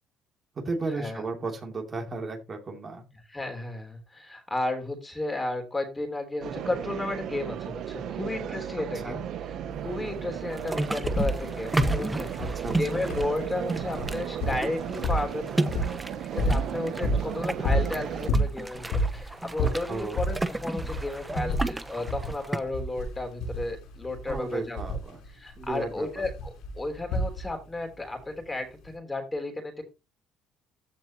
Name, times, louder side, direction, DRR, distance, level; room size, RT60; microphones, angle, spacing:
voice 1, 0.6-3.1 8.9-9.2 12.4-13.0 19.6-20.2 24.3-25.2 25.6-26.3, right 3 dB, 30° right, 2 dB, 2.9 m, -34 dB
voice 2, 3.3-9.2 9.8-15.7 16.3-24.8 25.4-29.8, left 2 dB, 15° left, 5 dB, 3.4 m, -33 dB
sound 1, 6.4-18.3, right 9 dB, 60° right, 0.9 m, -35 dB
sound 2, 9.7-9.8 10.1-11.5 11.8-27.7 28.8-28.9, equal, 70° left, 5.6 m, -31 dB
sound 3, 10.5-22.6, right 2 dB, 10° right, 0.9 m, -33 dB
15.0 x 5.2 x 3.0 m, 0.27 s
cardioid pair, 110°, 0 cm